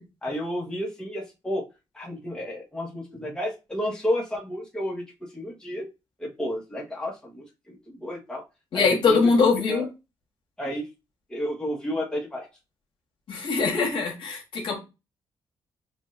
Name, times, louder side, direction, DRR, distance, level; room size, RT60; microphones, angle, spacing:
voice 1, 0.2-1.7 1.9-5.0 5.3-5.9 6.2-8.4 8.7-9.2 9.7-9.9 10.6-10.8 11.3-12.5 13.8-13.9, left 1 dB, 10° left, -3 dB, 1.3 m, -31 dB
voice 2, 8.7-9.8 13.3-14.7, left 4 dB, 65° left, 1 dB, 1.6 m, -22 dB
6.2 x 2.7 x 2.5 m, 0.26 s
cardioid pair, 125°, 9 cm